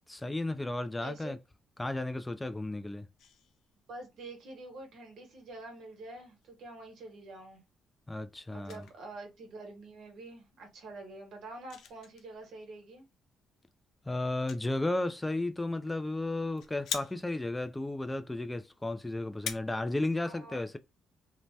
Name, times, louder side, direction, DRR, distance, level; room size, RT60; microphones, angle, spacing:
voice 1, 0.1-1.4 1.8-3.1 8.1-8.8 14.1-20.8, left 2 dB, 15° left, 0.3 m, -34 dB
voice 2, 1.0-1.4 3.9-7.6 8.5-13.1 20.2-20.8, right 2 dB, 75° right, 1.1 m, -47 dB
sound 1, 3.2-19.6, left 7 dB, 75° left, 0.5 m, -47 dB
2.7 x 2.1 x 3.2 m
cardioid pair, 90°, 0 cm